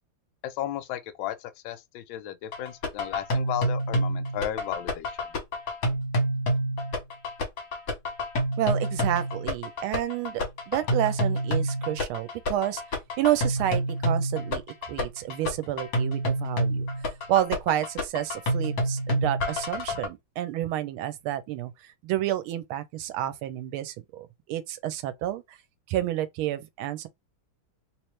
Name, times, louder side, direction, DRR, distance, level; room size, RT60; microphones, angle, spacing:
voice 1, 0.4-5.3, left 12 dB, 75° left, 1.3 m, -34 dB
sound 1, 2.5-20.1, equal, 50° left, 1.4 m, -28 dB
voice 2, 8.6-12.8 13.2-14.6 14.9-16.9 17.3-25.6 25.9-27.1, right 13 dB, 90° right, 1.5 m, -30 dB
3.2 x 3.1 x 3.2 m
omnidirectional pair, 2.3 m